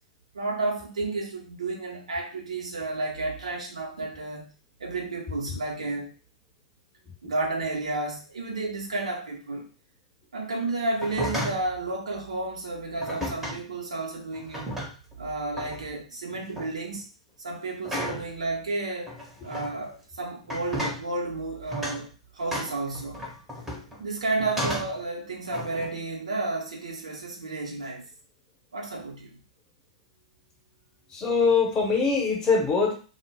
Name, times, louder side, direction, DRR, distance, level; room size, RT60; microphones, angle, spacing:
voice 1, 0.3-4.5 4.8-6.1 7.2-9.7 10.3-14.8 15.2-17.1 17.4-19.1 19.4-23.2 24.0-28.1 28.7-29.4, right 2 dB, 70° right, 0 dB, 0.6 m, -32 dB
sound 1, 10.9-11.7 13.0-13.6 14.3-15.1 15.6-15.9 16.3-16.7 17.8-18.3 19.1-19.7 20.4-21.1 21.7-22.0 22.5-24.0 24.4-25.0 25.5-25.9, equal, 5° right, 0.7 m, -33 dB
voice 2, 31.1-32.9, left 5 dB, 20° left, 0 dB, 0.9 m, -22 dB
2.0 x 2.0 x 3.3 m, 0.37 s
figure-of-eight pair, 105°, 3 cm